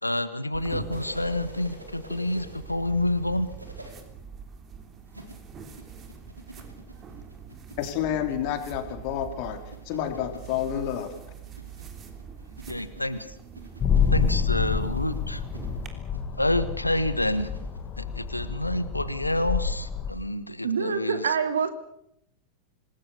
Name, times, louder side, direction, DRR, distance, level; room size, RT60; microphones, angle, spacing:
voice 1, 0.0-3.5 12.7-13.3 14.1-15.4 16.4-17.5 18.0-21.3, left 1 dB, 85° left, 13 dB, 1.4 m, -28 dB
sound 1, 0.5-15.9, right 7 dB, 25° right, 3.5 m, -43 dB
sound 2, 0.9-3.9 5.1-18.5 20.1-20.2, right 1 dB, 85° right, 4.3 m, -47 dB
voice 2, 7.8-9.6 9.9-11.1, left 10 dB, 45° left, 7 dB, 3.5 m, -29 dB
sound 3, 13.8-20.1, left 6 dB, 30° left, 2.2 m, -28 dB
voice 3, 20.6-21.7, right 6 dB, 65° right, 9 dB, 2.7 m, -26 dB
26.5 x 20.0 x 6.7 m, 0.77 s
figure-of-eight pair, 90°, 0 cm